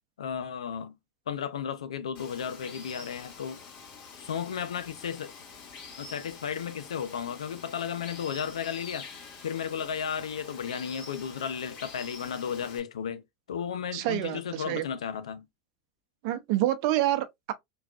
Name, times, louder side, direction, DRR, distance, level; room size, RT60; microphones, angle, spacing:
voice 1, 0.2-1.0 1.3-3.6 4.2-5.3 6.0-9.1 9.4-13.2 13.5-15.5, left 7 dB, 85° left, 0.5 m, -34 dB
Water, 2.1-12.8, left 5 dB, 50° left, 1.9 m, -46 dB
voice 2, 13.9-14.8 16.2-17.5, right 14 dB, 60° right, 0.6 m, -27 dB
3.4 x 2.3 x 2.4 m
hypercardioid pair, 95°, 3 cm